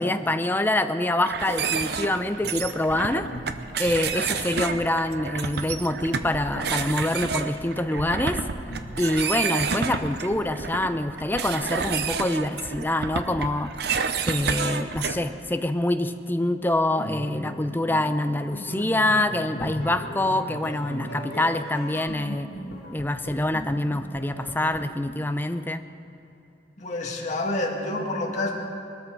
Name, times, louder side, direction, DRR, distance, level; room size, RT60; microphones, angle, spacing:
voice 1, 0.0-3.3 3.8-8.4 9.0-13.7 14.3-22.5 22.9-25.8, left 1 dB, 10° left, 9 dB, 0.6 m, -25 dB
sound 1, 1.2-15.2, right 5 dB, 65° right, 0.7 m, -30 dB
sound 2, 16.9-24.9, equal, 65° left, 1.9 m, -38 dB
voice 2, 26.8-28.5, left 2 dB, 40° left, -1 dB, 2.1 m, -29 dB
21.0 x 13.5 x 4.7 m, 2.9 s
head